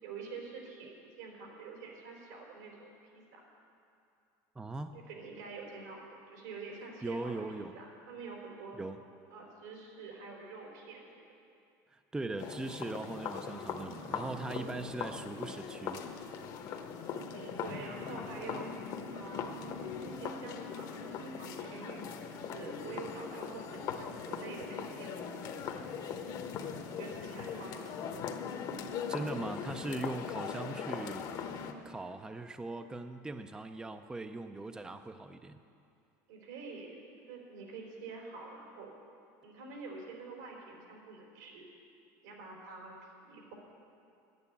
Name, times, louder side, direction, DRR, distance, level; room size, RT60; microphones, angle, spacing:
voice 1, 0.0-3.4 4.9-8.8 9.3-11.2 17.3-18.7 19.1-19.5 20.0-26.3 26.9-28.0 30.4-30.7 36.3-37.0 37.3-38.9 39.4-41.7 42.2-42.9 43.2-43.6, right 4 dB, 90° right, -1 dB, 3.8 m, -47 dB
voice 2, 4.6-5.0 7.0-7.7 8.8-9.0 11.9-16.0 16.7-16.8 29.1-31.3 31.8-35.6, right 2 dB, 10° right, 8 dB, 0.4 m, -40 dB
sound 1, 12.4-31.7, left 6 dB, 50° left, 1.1 m, -40 dB
10.5 x 9.4 x 8.5 m, 2.5 s
supercardioid pair, 125°, 9 cm